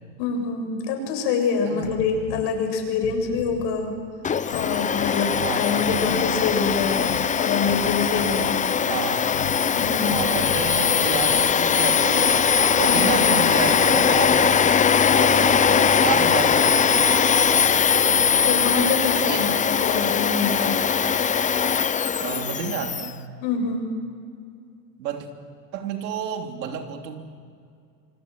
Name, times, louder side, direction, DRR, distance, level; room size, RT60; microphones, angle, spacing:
voice 1, 0.2-3.9 4.5-8.6 9.7-10.3 12.9-13.3 17.9-19.5 19.8-20.7 23.4-23.9, left 5 dB, 55° left, 3 dB, 7.5 m, -26 dB
sound 1, 1.8-2.5 3.0-3.7 4.5-5.5 5.8-7.3 7.7-8.6 9.3-11.4, left 8 dB, 90° left, 2.3 m, -37 dB
Domestic sounds home sounds, 4.2-23.1, left 7 dB, 15° left, 0.7 m, -20 dB
voice 2, 5.4-5.9 8.9-9.3 9.9-14.7 15.1-17.3 19.2-19.4 22.2-23.3 25.0-25.3 25.7-27.2, right 7 dB, 80° right, 4 dB, 3.3 m, -31 dB
27.0 x 25.0 x 7.8 m, 2.3 s
hypercardioid pair, 105°, 50 cm